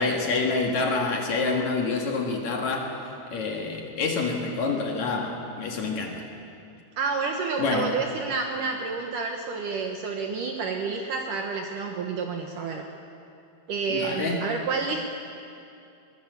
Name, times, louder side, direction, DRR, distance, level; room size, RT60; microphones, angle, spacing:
voice 1, 0.0-2.9 3.3-6.2 7.6-8.0 13.9-14.5, left 3 dB, 55° left, 1 dB, 2.2 m, -27 dB
voice 2, 7.0-12.9 13.7-15.1, right 4 dB, 90° right, 2 dB, 1.8 m, -29 dB
21.5 x 18.0 x 8.1 m, 2.6 s
omnidirectional pair, 5.6 m